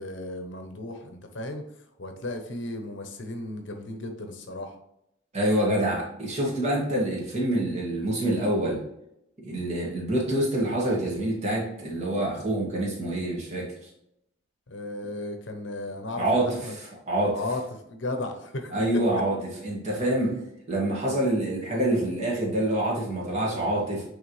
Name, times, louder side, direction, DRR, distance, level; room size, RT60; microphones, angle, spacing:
voice 1, 0.0-1.6 2.0-4.7 14.7-16.7 17.3-17.6 17.9-18.7, left 2 dB, 65° left, 5 dB, 0.9 m, -35 dB
voice 2, 5.3-8.8 9.4-13.9 16.2-17.4 18.7-19.4 19.6-20.4 20.7-24.0, right 1 dB, 35° right, -4 dB, 2.1 m, -26 dB
9.0 x 3.5 x 3.2 m, 0.80 s
head